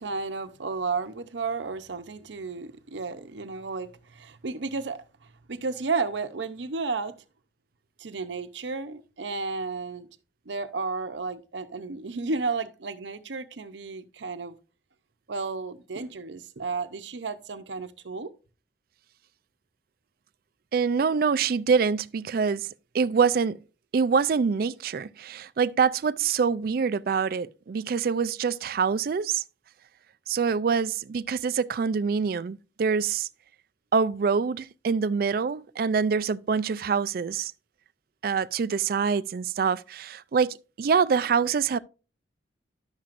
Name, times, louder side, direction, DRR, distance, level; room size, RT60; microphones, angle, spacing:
voice 1, 0.0-7.2 8.0-10.1 10.5-14.6 15.3-18.3, right 4 dB, 85° right, 0.8 m, -33 dB
voice 2, 20.7-22.7 22.9-23.6 23.9-29.4 30.3-33.3 33.9-37.5 38.2-41.8, right 5 dB, 55° right, 0.3 m, -25 dB
11.5 x 7.4 x 2.5 m
head